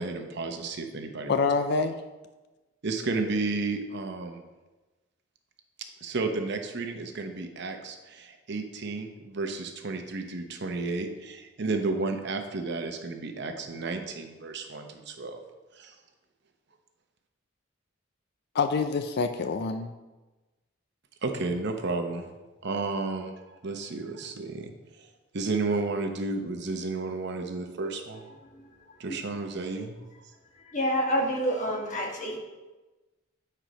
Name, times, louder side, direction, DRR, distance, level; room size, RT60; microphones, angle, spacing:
voice 1, 0.0-1.5 2.8-4.4 6.0-15.4 15.7-15.9 21.2-22.3 22.6-25.1 25.3-28.3 29.0-30.0, right 3 dB, 60° right, 5 dB, 0.8 m, -32 dB
voice 2, 1.3-2.0 18.5-19.9, left 4 dB, 55° left, 8 dB, 0.4 m, -26 dB
voice 3, 30.7-32.4, equal, 40° left, -1 dB, 1.4 m, -27 dB
8.2 x 4.4 x 5.1 m, 1.2 s
head